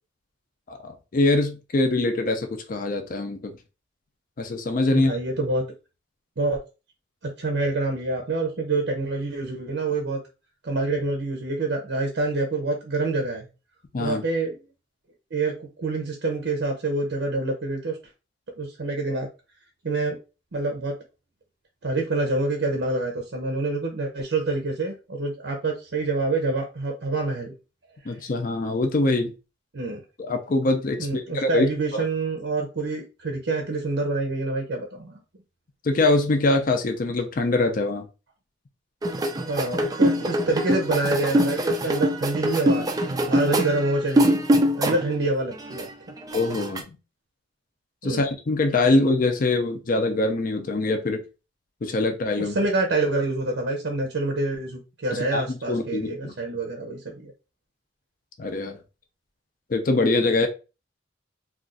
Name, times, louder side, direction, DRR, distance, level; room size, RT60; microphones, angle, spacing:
voice 1, 0.7-3.5 4.4-5.2 13.9-14.2 28.1-29.3 30.2-32.0 35.8-38.1 46.3-47.0 48.0-51.2 51.8-52.6 55.3-56.3 58.4-58.8 59.7-60.5, left 2 dB, 45° left, 5 dB, 0.4 m, -23 dB
voice 2, 4.9-5.6 6.4-6.6 7.4-10.2 10.6-13.5 14.0-14.6 15.3-18.0 18.6-19.3 19.8-20.2 20.5-20.9 21.8-27.5 28.0-28.1 29.7-30.0 31.0-35.2 39.5-44.4 44.8-45.9 48.0-48.3 52.3-57.3, right 2 dB, 75° right, 2 dB, 0.7 m, -27 dB
sound 1, 39.0-45.2 45.5-46.8, equal, 20° right, 0.3 m, -23 dB
2.4 x 2.4 x 3.8 m, 0.30 s
head